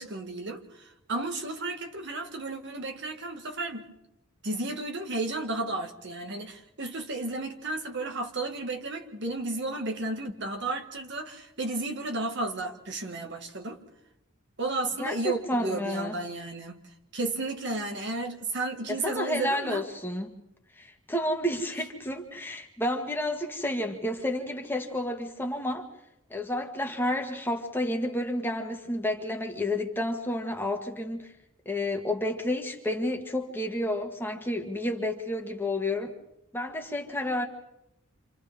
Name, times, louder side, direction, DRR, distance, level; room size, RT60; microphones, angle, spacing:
voice 1, 0.0-3.9 4.4-13.8 14.6-16.8 17.1-19.8, right 2 dB, 60° right, 2.0 m, -33 dB
voice 2, 15.0-16.1 18.9-20.3 20.8-25.9 26.3-31.3 31.6-36.1 36.5-37.5, left 1 dB, 10° left, 1.6 m, -30 dB
29.5 x 27.0 x 3.7 m
head